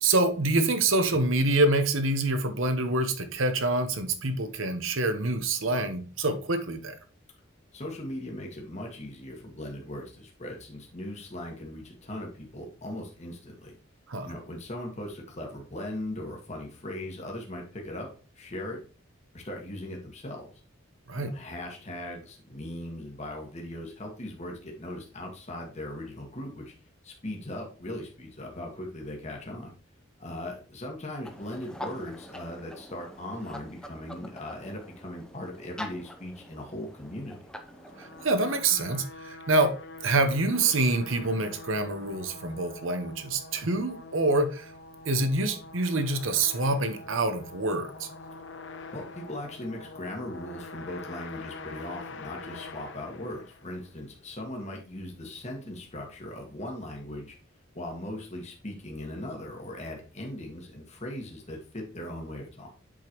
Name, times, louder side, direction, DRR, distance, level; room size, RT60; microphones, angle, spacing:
voice 1, 0.0-6.9 14.1-14.3 21.1-21.3 38.0-39.7 40.0-44.7 45.1-48.1, right 2 dB, 70° right, 1.0 m, -26 dB
voice 2, 7.7-13.7 14.2-18.1 18.3-18.8 19.3-20.5 21.2-26.7 27.0-29.7 30.2-37.5 48.9-57.3 57.7-62.7, left 1 dB, 35° left, 1.4 m, -39 dB
sound 1, 31.2-38.6, left 1 dB, 5° left, 0.7 m, -45 dB
sound 2, 37.7-54.0, left 3 dB, 65° left, 0.7 m, -45 dB
7.5 x 5.1 x 3.0 m
head